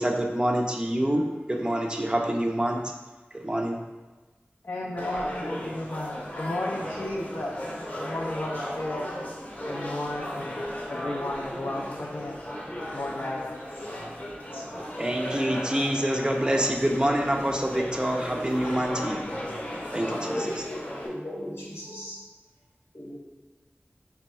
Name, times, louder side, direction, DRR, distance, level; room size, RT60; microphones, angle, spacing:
voice 1, 0.0-2.9 3.3-3.8 15.0-19.4 19.9-20.7, right 1 dB, 20° right, 1 dB, 0.4 m, -26 dB
voice 2, 4.6-7.6 8.0-9.1 9.7-12.4 12.9-13.8 14.5-14.6, left 1 dB, 65° left, -3 dB, 0.4 m, -34 dB
sound 1, 5.0-21.1, equal, 35° left, 0.7 m, -35 dB
voice 3, 20.9-22.2 22.9-23.1, equal, 85° left, -6 dB, 1.2 m, -38 dB
3.3 x 2.2 x 4.1 m, 1.2 s
wide cardioid pair, 55°, 4 cm